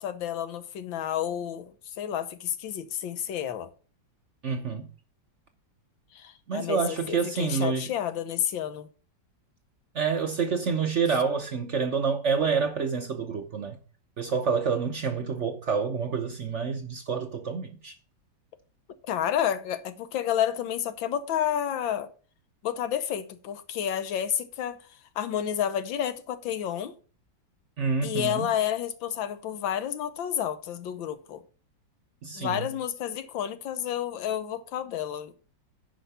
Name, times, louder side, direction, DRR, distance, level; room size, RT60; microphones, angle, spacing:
voice 1, 0.0-1.7 2.0-3.7 6.1-8.9 19.1-22.1 22.6-24.8 25.2-26.9 28.0-31.4 32.3-35.4, left 10 dB, 85° left, 1.6 m, -30 dB
voice 2, 4.4-4.9 6.5-7.9 9.9-13.8 14.2-17.9 27.8-28.5 32.2-32.7, right 5 dB, 55° right, 0.8 m, -28 dB
10.0 x 5.1 x 5.6 m
omnidirectional pair, 2.1 m